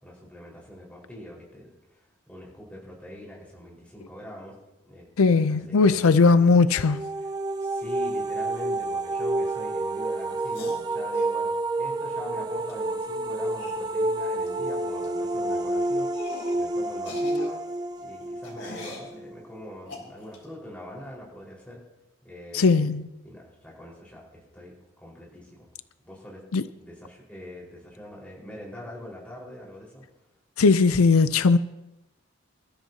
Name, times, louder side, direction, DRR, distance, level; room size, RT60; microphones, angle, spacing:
voice 1, 0.0-4.6 4.8-6.5 7.1-7.3 7.6-16.3 16.5-17.6 18.0-21.8 22.2-22.9 23.2-25.7 26.0-26.4 26.8-30.0, left 1 dB, 5° left, 4.7 m, -43 dB
voice 2, 5.2-7.0 22.5-23.1 26.5-26.6 30.6-31.6, left 4 dB, 90° left, 0.5 m, -19 dB
sound 1, 6.7-19.6, right 2 dB, 20° right, 0.5 m, -29 dB
sound 2, 10.4-11.3 12.7-12.8 13.0-13.1 13.6-13.8 14.5-14.7 14.9-15.1 15.5-15.7 16.1-16.6 16.9-19.1 19.9-20.4, left 2 dB, 60° left, 3.9 m, -41 dB
26.5 x 13.0 x 2.8 m
head